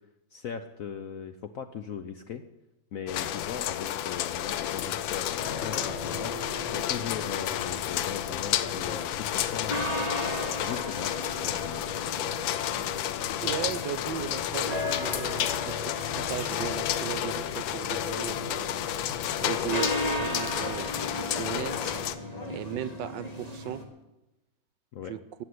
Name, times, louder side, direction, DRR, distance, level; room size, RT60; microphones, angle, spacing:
voice 1, 0.3-2.4 2.9-6.3 6.7-10.1 10.6-11.8 24.9-25.1, left 7 dB, 65° left, 9 dB, 0.9 m, -38 dB
sound 1, 3.1-22.2, left 11 dB, 90° left, 1.4 m, -31 dB
sound 2, 5.4-23.8, left 1 dB, 20° left, 1.7 m, -37 dB
voice 2, 13.4-18.7 19.4-21.8 22.5-23.8 25.1-25.2, right 10 dB, 70° right, 14 dB, 1.3 m, -36 dB
14.5 x 7.6 x 9.5 m, 1.0 s
omnidirectional pair, 2.1 m